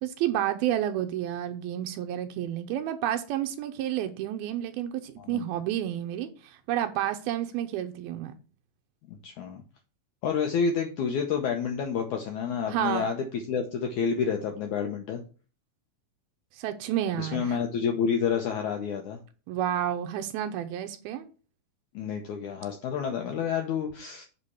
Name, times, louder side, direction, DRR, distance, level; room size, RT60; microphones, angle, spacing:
voice 1, 0.0-8.3 12.7-13.1 16.5-17.6 19.5-21.3, right 11 dB, 85° right, 2.6 m, -30 dB
voice 2, 9.1-9.6 10.2-15.2 17.2-19.2 21.9-24.2, left 6 dB, 70° left, 1.9 m, -29 dB
8.2 x 4.2 x 7.1 m
omnidirectional pair, 4.4 m